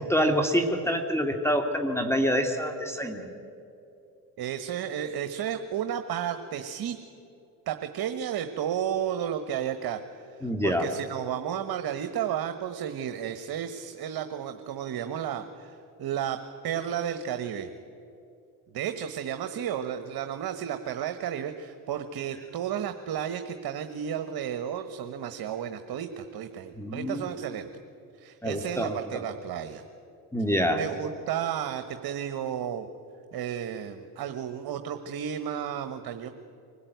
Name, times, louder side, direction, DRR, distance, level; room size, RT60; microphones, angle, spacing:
voice 1, 0.0-3.3 10.4-10.9 26.8-27.3 28.4-29.2 30.3-30.8, equal, 5° left, 5 dB, 2.1 m, -26 dB
voice 2, 4.4-7.0 7.7-17.7 18.7-27.7 28.2-29.8 30.8-32.9 33.3-36.3, right 9 dB, 60° right, 8 dB, 1.3 m, -33 dB
24.5 x 16.0 x 9.3 m, 2.7 s
supercardioid pair, 70°, 42 cm